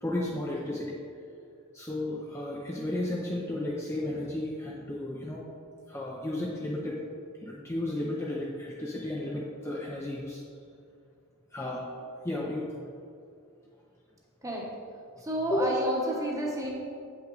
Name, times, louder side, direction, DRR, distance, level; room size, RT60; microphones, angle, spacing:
voice 1, 0.0-1.0 1.7-5.5 5.9-7.0 7.4-10.4 11.5-12.9 15.5-15.7, left 1 dB, 10° left, -3 dB, 0.5 m, -33 dB
voice 2, 15.2-16.7, right 1 dB, 15° right, -2 dB, 1.0 m, -30 dB
7.9 x 5.6 x 4.0 m, 2.4 s
head